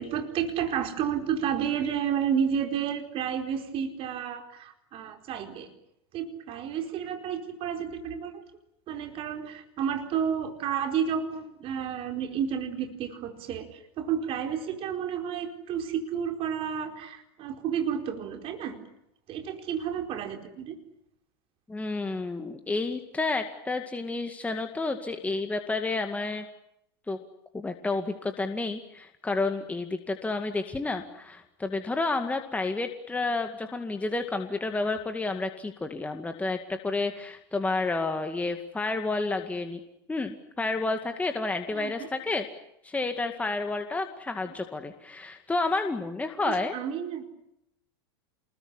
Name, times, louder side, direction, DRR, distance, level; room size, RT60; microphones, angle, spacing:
voice 1, 0.0-5.7 6.1-8.4 8.9-18.8 19.3-20.8 41.7-42.1 44.5-44.6 46.5-47.3, right 8 dB, 45° right, 5 dB, 4.5 m, -31 dB
voice 2, 21.7-26.4 27.1-27.2 27.5-39.8 40.1-42.5 42.8-46.7, left 3 dB, 10° left, 6 dB, 2.2 m, -30 dB
28.0 x 21.5 x 9.9 m, 0.80 s
hypercardioid pair, 105°, 14 cm